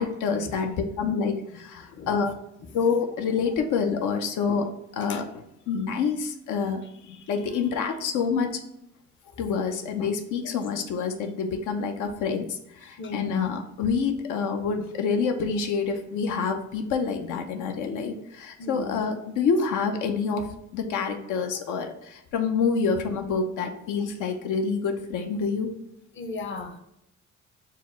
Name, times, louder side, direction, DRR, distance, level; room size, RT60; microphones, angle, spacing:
voice 1, 0.0-2.3 2.7-4.7 4.9-8.6 9.4-20.5 20.7-25.7, left 5 dB, 80° left, 4 dB, 0.6 m, -27 dB
voice 2, 13.0-13.5 18.6-19.0 26.2-26.8, left 3 dB, 40° left, 6 dB, 0.6 m, -35 dB
4.7 x 2.0 x 4.4 m, 0.82 s
cardioid pair, 90°, 30 cm